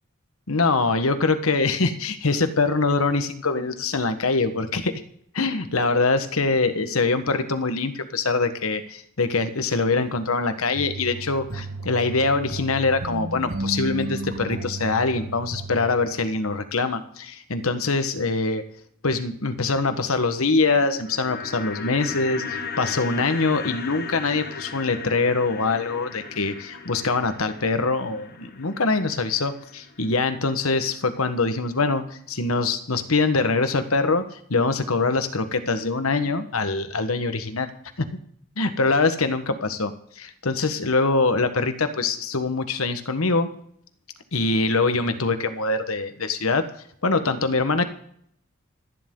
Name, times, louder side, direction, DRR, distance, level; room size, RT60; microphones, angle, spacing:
voice 1, 0.5-5.0 5.3-18.6 19.0-34.2 34.5-37.7 38.6-43.5 44.3-46.7 47.0-47.8, left 3 dB, 80° left, 9 dB, 1.3 m, -23 dB
sound 1, 10.7-16.0, right 2 dB, 75° right, 1.7 m, -33 dB
sound 2, 20.9-31.0 31.3-31.4, left 5 dB, 45° left, 1.4 m, -37 dB
27.0 x 10.0 x 3.8 m, 0.68 s
head